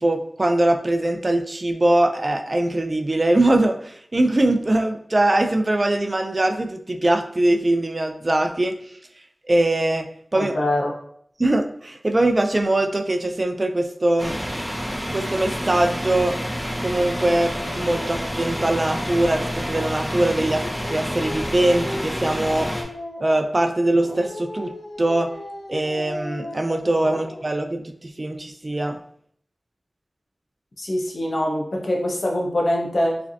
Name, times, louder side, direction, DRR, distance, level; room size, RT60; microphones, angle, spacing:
voice 1, 0.0-8.7 9.5-10.1 10.3-10.6 11.4-14.4 15.1-16.4 16.8-20.6 20.9-22.7 23.2-24.7 25.0-25.3 25.7-29.0, right 1 dB, 40° right, 5 dB, 0.4 m, -22 dB
voice 2, 10.3-10.9 27.1-27.2 30.8-33.2, left 1 dB, 65° left, -1 dB, 0.9 m, -23 dB
sound 1, 14.2-22.8, equal, 5° left, 0.8 m, -29 dB
Dog, 17.2-20.0 20.5-23.6 24.0-27.5, left 1 dB, 85° left, 1.3 m, -37 dB
4.8 x 3.3 x 2.7 m, 0.65 s
wide cardioid pair, 55°, 0 cm